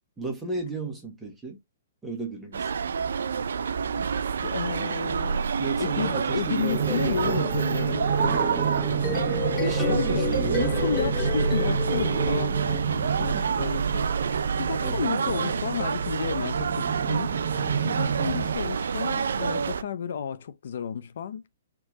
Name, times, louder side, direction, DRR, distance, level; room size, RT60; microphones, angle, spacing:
voice 1, 0.2-1.6 2.0-2.7 5.6-7.5 9.1-11.3 13.2-13.5 14.8-15.2, right 3 dB, 5° right, 1.3 m, -34 dB
sound 1, 2.5-19.8, right 6 dB, 85° right, 0.4 m, -28 dB
voice 2, 4.4-5.5 5.8-8.5 9.8-10.3 10.6-14.1 14.6-17.6 17.8-21.4, left 7 dB, 65° left, 0.5 m, -32 dB
sound 2, 6.7-18.6, right 7 dB, 25° right, 1.2 m, -30 dB
sound 3, 8.8-13.2, left 8 dB, 20° left, 1.8 m, -32 dB
4.5 x 2.9 x 3.6 m
hypercardioid pair, 165°, 0 cm